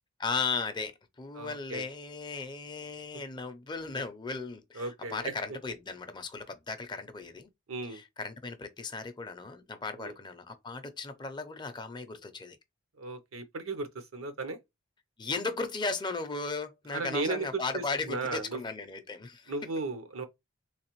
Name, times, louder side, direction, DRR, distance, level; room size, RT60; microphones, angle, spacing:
voice 1, 0.2-7.5 7.8-12.6 15.2-19.5, left 4 dB, 20° left, 0.5 m, -36 dB
voice 2, 1.3-1.9 4.8-5.3 7.7-8.0 10.0-10.1 13.0-14.6 16.9-18.6 19.5-20.2, right 3 dB, 75° right, 0.8 m, -35 dB
3.3 x 3.2 x 3.0 m
head